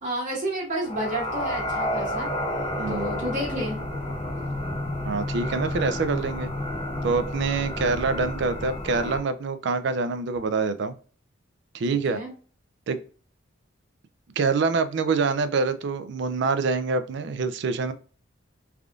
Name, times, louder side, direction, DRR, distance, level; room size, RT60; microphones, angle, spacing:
voice 1, 0.0-2.3 2.9-3.8 11.9-12.3, right 1 dB, 40° right, -5 dB, 1.3 m, -30 dB
sound 1, 0.8-9.2, left 1 dB, 30° left, 0.9 m, -30 dB
voice 2, 5.0-6.5 7.0-10.9 11.7-12.2 12.9-13.0 14.4-17.9, right 4 dB, 60° right, 11 dB, 0.4 m, -25 dB
3.4 x 2.4 x 2.3 m, 0.40 s
head